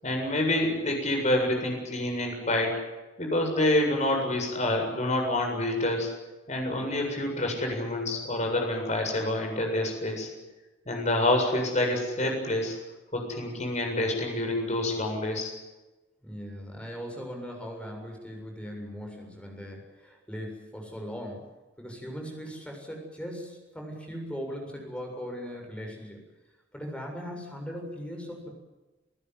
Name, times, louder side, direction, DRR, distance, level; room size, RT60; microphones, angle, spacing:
voice 1, 0.0-2.7 3.2-6.1 6.5-10.3 10.9-12.8 13.1-15.5, left 1 dB, 40° left, 2 dB, 7.6 m, -27 dB
voice 2, 16.2-21.5 21.8-26.3 26.7-28.5, equal, 5° left, 2 dB, 7.3 m, -39 dB
29.5 x 15.5 x 9.6 m, 1.1 s
head